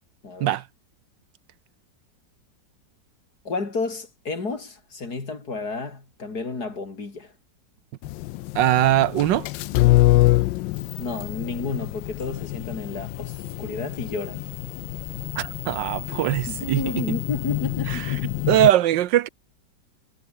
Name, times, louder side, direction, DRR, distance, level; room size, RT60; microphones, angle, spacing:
voice 1, 3.4-7.3 11.0-14.4 16.5-18.2, left 3 dB, 60° left, 4.1 m, -31 dB
sound 1, 8.0-18.7, left 17 dB, 85° left, 1.3 m, -25 dB
voice 2, 8.5-9.5 15.4-16.8 17.9-18.1 18.5-19.3, right 13 dB, 85° right, 1.4 m, -21 dB
omnidirectional pair, 2.0 m